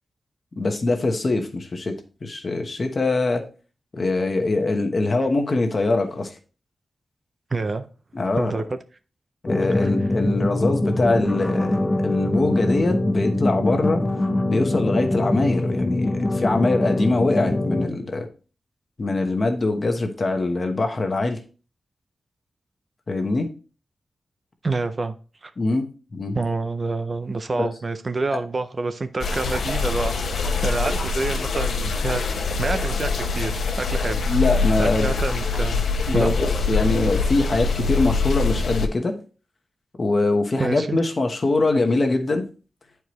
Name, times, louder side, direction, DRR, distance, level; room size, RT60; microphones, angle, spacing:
voice 1, 0.6-1.9 2.2-3.4 3.9-6.3 8.1-8.5 9.4-14.0 14.5-18.3 19.0-21.4 23.1-23.5 25.6-26.4 27.5-27.7 34.3-35.1 36.1-39.1 40.0-42.4, left 2 dB, 35° left, 5 dB, 1.1 m, -23 dB
voice 2, 7.5-7.9 8.3-8.8 9.7-10.1 24.6-25.1 25.4-25.5 26.3-30.1 30.4-33.5 33.8-34.2 34.8-35.8 36.1-36.3 40.6-41.0, right 3 dB, 30° right, 10 dB, 0.4 m, -27 dB
sound 1, 9.5-17.9, left 1 dB, 15° left, 0.6 m, -23 dB
sound 2, 29.2-38.9, left 4 dB, 80° left, 0.8 m, -24 dB
10.0 x 4.6 x 3.0 m, 0.35 s
wide cardioid pair, 180°, 0 cm